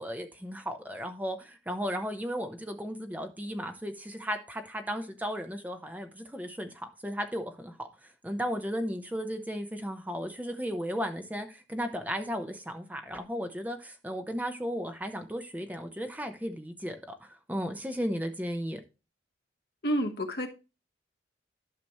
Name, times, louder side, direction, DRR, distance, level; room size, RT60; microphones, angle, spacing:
voice 1, 0.0-7.9 8.2-18.8, equal, 10° right, 0.8 m, -35 dB
voice 2, 19.8-20.5, equal, 60° left, 1.2 m, -29 dB
12.0 x 6.0 x 3.0 m
head